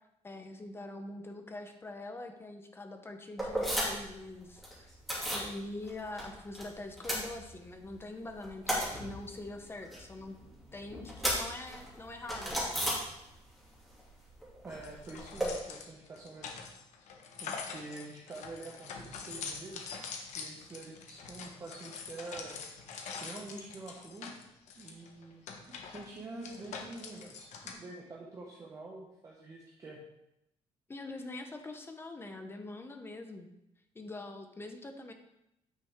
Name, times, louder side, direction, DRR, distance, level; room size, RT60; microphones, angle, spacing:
voice 1, 0.2-4.9 5.3-10.4 10.7-12.8 30.9-33.5 33.9-35.1, left 2 dB, 20° left, 5 dB, 0.8 m, -44 dB
sound 1, 3.4-4.2 4.4-5.5 5.8-6.6 6.9-7.9 8.2-13.6 13.9-15.5, equal, ahead, 2.6 m, -35 dB
voice 2, 14.6-16.5 17.4-20.0 20.3-22.6 23.0-24.3 24.7-30.0, right 2 dB, 30° right, -3 dB, 1.2 m, -47 dB
sound 2, 14.7-27.7, left 5 dB, 80° left, 1.2 m, -44 dB
9.0 x 6.0 x 3.7 m, 0.85 s
cardioid pair, 150°, 12 cm